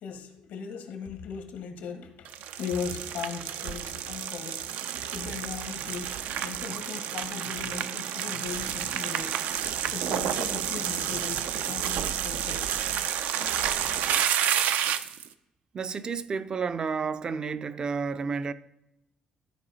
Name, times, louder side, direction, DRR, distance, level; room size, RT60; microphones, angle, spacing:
voice 1, 0.0-4.7 5.1-9.4 9.9-12.7, left 6 dB, 85° left, 1.2 m, -38 dB
sound 1, 2.3-15.3, right 9 dB, 85° right, 0.5 m, -30 dB
voice 2, 15.7-18.5, right 5 dB, 30° right, 0.4 m, -31 dB
12.5 x 4.8 x 4.1 m
cardioid pair, 165°, 3 cm